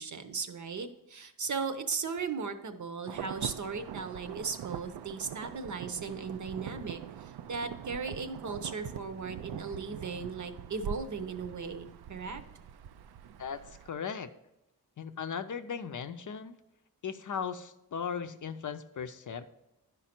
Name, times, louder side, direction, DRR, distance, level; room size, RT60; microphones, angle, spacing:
voice 1, 0.0-12.4, right 5 dB, 50° right, 8 dB, 0.8 m, -37 dB
Insect / Thunder / Rain, 3.1-13.9, right 9 dB, 85° right, 0.5 m, -43 dB
voice 2, 13.4-14.3 15.0-16.6 17.0-19.5, left 6 dB, 55° left, 9 dB, 0.6 m, -37 dB
11.0 x 5.2 x 4.4 m, 0.92 s
wide cardioid pair, 155°, 37 cm